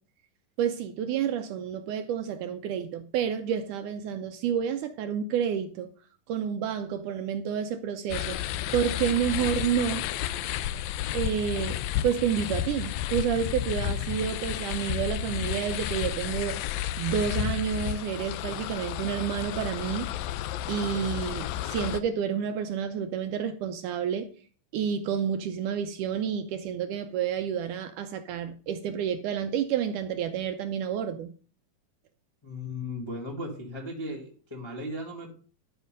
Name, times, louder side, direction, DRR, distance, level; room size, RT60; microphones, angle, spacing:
voice 1, 0.6-5.9 6.3-8.4 8.7-10.0 11.1-16.6 17.0-20.1 20.7-24.3 24.7-31.3, right 8 dB, 75° right, 2.0 m, -29 dB
sound 1, 8.1-22.0, left 12 dB, 90° left, 2.4 m, -32 dB
voice 2, 32.4-35.3, left 1 dB, 15° left, 0.9 m, -36 dB
12.5 x 5.6 x 5.2 m
omnidirectional pair, 4.0 m